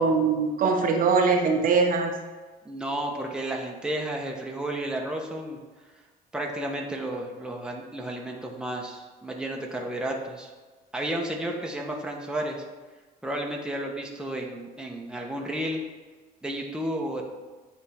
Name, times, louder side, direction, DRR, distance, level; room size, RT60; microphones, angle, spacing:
voice 1, 0.0-2.1, right 4 dB, 55° right, 3 dB, 0.8 m, -22 dB
voice 2, 2.6-5.6 6.3-10.5 10.9-12.6 13.2-15.8 16.4-17.2, right 1 dB, 5° right, 0 dB, 1.0 m, -32 dB
9.7 x 3.6 x 3.5 m, 1.3 s
cardioid pair, 110°, 17 cm